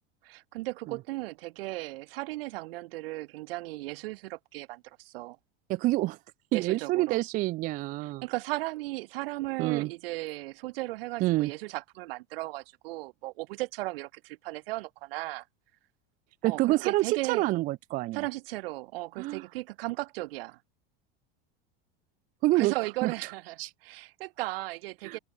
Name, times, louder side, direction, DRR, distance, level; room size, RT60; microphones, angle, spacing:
voice 1, 0.2-5.4 6.5-7.2 8.0-15.4 16.4-17.5 18.1-20.6 22.5-25.2, right 20 dB, 75° right, 1.8 m, -36 dB
voice 2, 5.7-6.2 6.5-8.2 9.6-9.9 11.2-11.5 16.4-18.2 19.2-19.4 22.4-22.7 23.0-23.1 23.6-23.7 25.0-25.2, right 18 dB, 30° right, 0.6 m, -27 dB
supercardioid pair, 175°, 30 cm